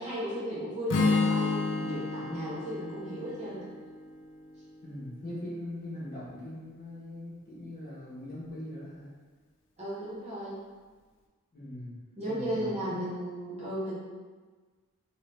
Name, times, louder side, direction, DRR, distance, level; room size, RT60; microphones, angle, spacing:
voice 1, 0.0-3.7 9.8-10.6 12.2-14.0, equal, 30° right, -10 dB, 1.2 m, -35 dB
Strum, 0.9-5.1, left 3 dB, 55° left, 0.5 m, -31 dB
voice 2, 4.8-9.1 11.5-12.0 12.2-13.0, left 1 dB, 40° left, -8 dB, 1.1 m, -41 dB
3.1 x 2.8 x 3.2 m, 1.4 s
head